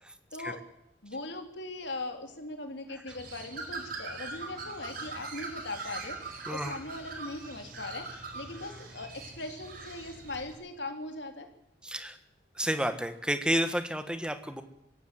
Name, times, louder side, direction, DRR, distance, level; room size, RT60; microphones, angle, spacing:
voice 1, 0.0-0.6 2.9-3.1 6.5-6.7 11.8-12.2 12.5-14.6, equal, 5° right, 9 dB, 1.4 m, -31 dB
voice 2, 1.0-6.2 6.5-11.5, left 2 dB, 70° left, 5 dB, 3.3 m, -40 dB
Bird, 3.1-10.5, right 3 dB, 50° right, 4.8 m, -42 dB
25.0 x 16.5 x 7.6 m, 0.82 s
head